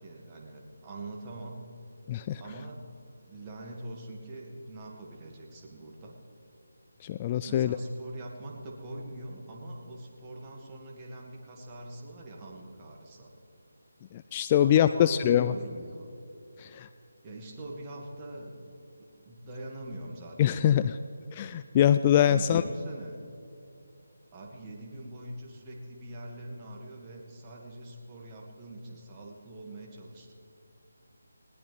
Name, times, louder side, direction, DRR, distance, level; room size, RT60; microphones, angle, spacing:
voice 1, 0.0-1.6 2.4-2.8 3.2-6.1 7.5-13.3 14.6-16.1 17.2-20.8 22.2-23.2 24.3-30.3, right 1 dB, 20° right, -2 dB, 2.3 m, -43 dB
voice 2, 2.1-2.4 7.0-7.8 14.1-15.5 16.6-16.9 20.4-21.0 21.3-22.6, left 10 dB, 25° left, 12 dB, 0.3 m, -24 dB
20.0 x 19.0 x 3.6 m, 2.7 s
figure-of-eight pair, 155°, 0 cm